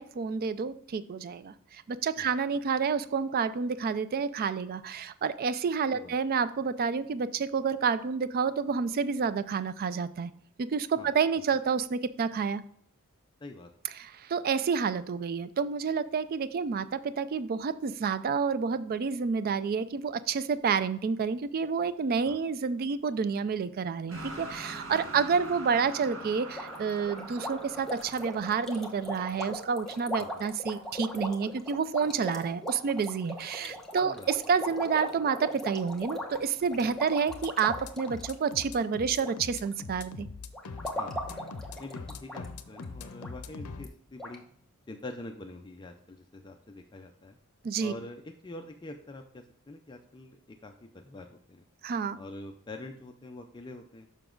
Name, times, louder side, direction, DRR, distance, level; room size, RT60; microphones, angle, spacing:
voice 1, 0.0-10.3 10.6-12.6 14.0-40.3 47.6-47.9 51.8-52.2, right 6 dB, 40° right, 15 dB, 0.3 m, -29 dB
sound 1, 24.1-30.1, right 2 dB, 65° right, 1.3 m, -44 dB
sound 2, 26.6-39.3 39.6-40.0 40.5-42.4 42.7-42.8 43.2-43.3 43.8-43.9 44.2-44.4, left 1 dB, ahead, 0.9 m, -39 dB
sound 3, 37.3-43.9, left 4 dB, 75° left, 0.7 m, -42 dB
voice 2, 41.8-44.4 44.9-47.4 47.8-51.6 52.2-54.1, left 2 dB, 20° left, 4 dB, 0.5 m, -45 dB
7.0 x 5.8 x 3.8 m, 0.64 s
head